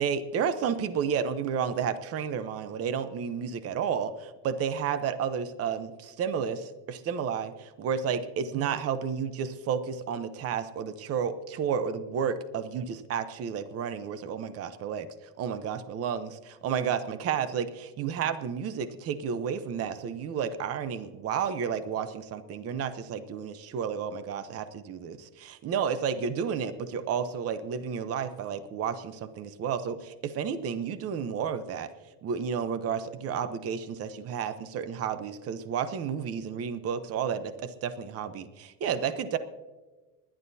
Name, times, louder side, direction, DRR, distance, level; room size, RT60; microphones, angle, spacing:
voice 1, 0.0-15.1 15.4-31.9 32.2-39.4, right 7 dB, 35° right, 12 dB, 0.8 m, -31 dB
27.0 x 11.5 x 2.7 m, 1.2 s
cardioid pair, 155°, 43 cm